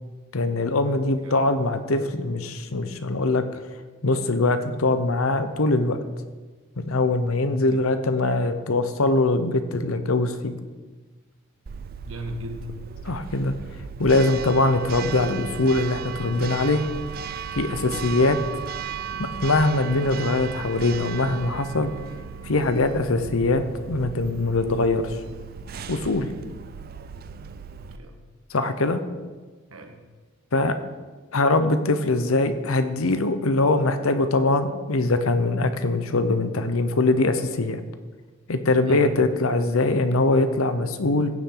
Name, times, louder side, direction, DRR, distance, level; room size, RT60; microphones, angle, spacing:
voice 1, 0.3-3.4 4.0-6.0 6.8-10.6 13.0-13.5 14.0-16.9 17.5-18.4 19.2-21.9 22.4-23.6 23.9-25.2 25.9-26.3 28.5-29.0 30.5-30.7 31.3-37.8 38.5-41.3, left 2 dB, 75° left, 9 dB, 0.9 m, -22 dB
Church bell, 11.7-28.0, right 6 dB, 45° right, 0.4 m, -36 dB
voice 2, 12.0-12.7 17.8-18.1 27.9-28.2 29.7-30.0 38.9-39.2, right 1 dB, 75° right, 4 dB, 1.5 m, -37 dB
16.0 x 7.2 x 3.9 m, 1.3 s
head